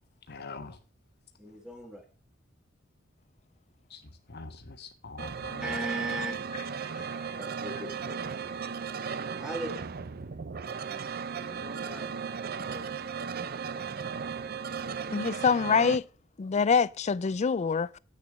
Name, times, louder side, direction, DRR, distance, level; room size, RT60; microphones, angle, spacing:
voice 1, 0.3-0.7 3.9-4.0 4.3-5.6 6.9-7.1, left 4 dB, 55° left, 1.3 m, -43 dB
voice 2, 1.4-2.1 5.4-6.4 7.3-8.2 9.4-9.8 11.4-12.9, right 2 dB, 5° right, 2.1 m, -38 dB
sound 1, 5.2-16.0, right 6 dB, 50° right, 0.6 m, -36 dB
voice 3, 15.1-16.1 16.4-17.9, left 5 dB, 35° left, 0.4 m, -25 dB
8.3 x 6.7 x 6.1 m
head